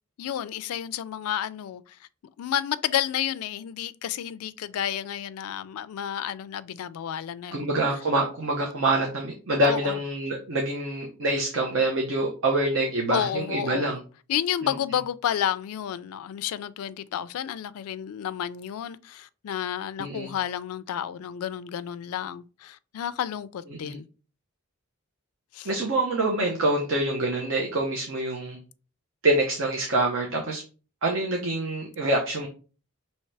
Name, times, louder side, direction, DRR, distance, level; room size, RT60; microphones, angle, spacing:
voice 1, 0.2-2.0 2.4-7.7 9.6-10.0 13.1-14.0 14.3-24.1 25.5-25.7, left 10 dB, 90° left, 0.3 m, -31 dB
voice 2, 7.5-14.0 14.6-14.7 20.0-20.3 23.7-24.0 25.6-28.6 29.2-30.6 31.0-32.5, right 2 dB, 60° right, 0.8 m, -26 dB
5.6 x 2.8 x 3.3 m
head